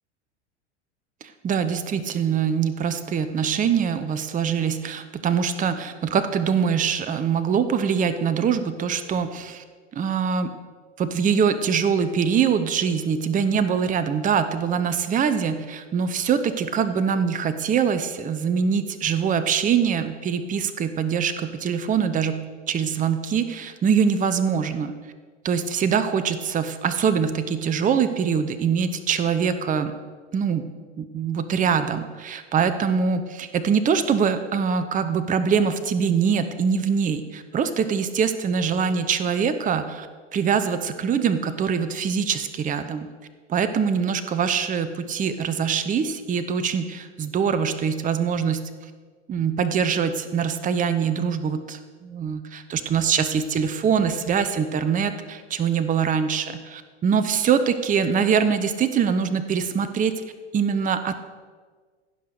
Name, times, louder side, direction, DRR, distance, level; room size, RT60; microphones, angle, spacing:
voice 1, 1.2-9.6 9.9-10.5 11.0-24.9 25.4-29.9 30.3-30.7 31.0-40.1 40.3-43.1 43.5-48.6 49.3-60.1 60.5-61.2, right 7 dB, 20° right, 11 dB, 0.8 m, -23 dB
15.5 x 5.7 x 6.4 m, 1.5 s
hypercardioid pair, 95°, 36 cm